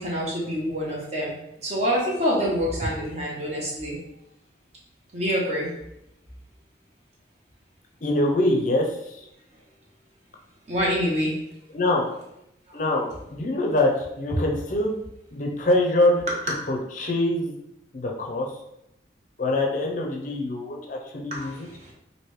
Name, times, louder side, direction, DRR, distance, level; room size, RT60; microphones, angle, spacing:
voice 1, 0.0-1.3 1.6-4.0 5.1-5.7 10.7-11.3 21.3-21.9, equal, 35° right, -4 dB, 0.7 m, -26 dB
voice 2, 8.0-9.3 11.7-12.1 12.7-14.9 15.3-16.2 16.7-17.6 17.9-18.6 19.4-21.7, left 1 dB, 45° left, 0 dB, 0.4 m, -24 dB
3.0 x 2.6 x 3.1 m, 0.83 s
head